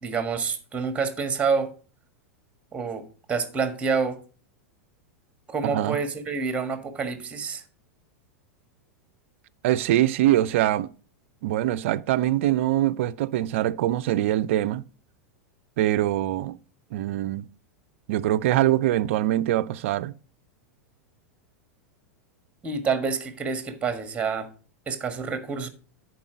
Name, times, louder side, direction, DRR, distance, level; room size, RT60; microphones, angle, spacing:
voice 1, 0.0-1.7 2.7-4.2 5.5-7.6 22.6-24.5 24.9-25.7, right 5 dB, 15° right, 1.6 m, -28 dB
voice 2, 9.6-10.9 11.4-14.8 15.8-16.6 16.9-17.5 18.1-20.1, right 14 dB, 60° right, 0.4 m, -23 dB
10.5 x 4.7 x 5.0 m
hypercardioid pair, 95°, 8 cm